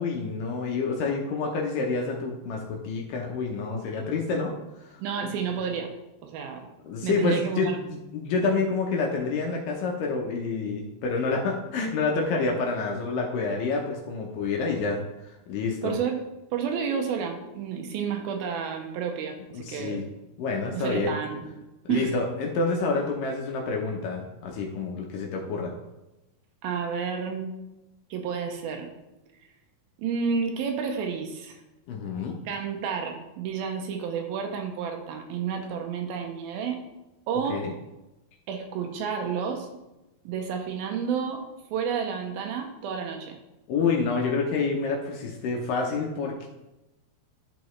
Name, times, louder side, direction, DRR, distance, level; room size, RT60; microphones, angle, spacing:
voice 1, 0.0-4.5 5.2-5.3 6.8-15.0 15.5-16.0 19.5-20.0 20.4-21.1 21.9-25.7 31.9-32.4 37.5-37.7 43.7-46.5, left 4 dB, 75° left, 0 dB, 2.2 m, -28 dB
voice 2, 5.0-5.9 6.2-6.6 7.0-7.8 15.8-16.2 16.5-20.0 20.7-21.6 21.9-22.1 26.6-27.5 28.1-28.9 30.0-31.6 32.5-36.8 37.3-37.7 38.5-39.7 40.3-41.4 41.7-43.4, right 6 dB, 80° right, 4 dB, 2.5 m, -30 dB
11.0 x 5.2 x 3.1 m, 0.98 s
omnidirectional pair, 4.5 m